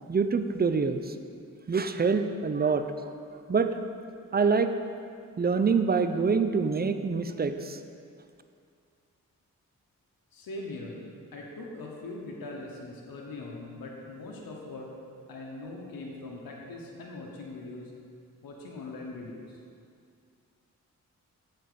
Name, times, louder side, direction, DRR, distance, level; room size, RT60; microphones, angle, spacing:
voice 1, 0.1-1.1 1.7-2.9 3.5-3.7 4.3-4.7 5.4-7.8, right 5 dB, 30° right, 9 dB, 0.5 m, -25 dB
voice 2, 10.3-11.0 11.3-14.9 15.3-17.9 18.4-19.6, left 2 dB, 90° left, -2 dB, 0.9 m, -41 dB
7.7 x 4.2 x 6.7 m, 2.3 s
cardioid pair, 45°, 34 cm